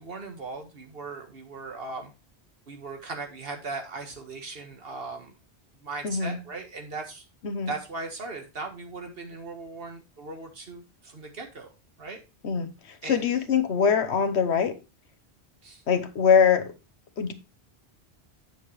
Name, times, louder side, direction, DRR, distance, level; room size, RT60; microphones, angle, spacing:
voice 1, 0.0-2.1 2.7-5.4 5.7-7.3 7.7-11.7 12.0-12.2 13.0-13.2 15.6-15.8, right 3 dB, 60° right, 1.7 m, -38 dB
voice 2, 6.0-6.4 7.4-7.7 12.4-14.8 15.9-16.7 17.2-17.3, left 6 dB, 80° left, 1.2 m, -23 dB
8.7 x 6.9 x 3.1 m
omnidirectional pair, 1.1 m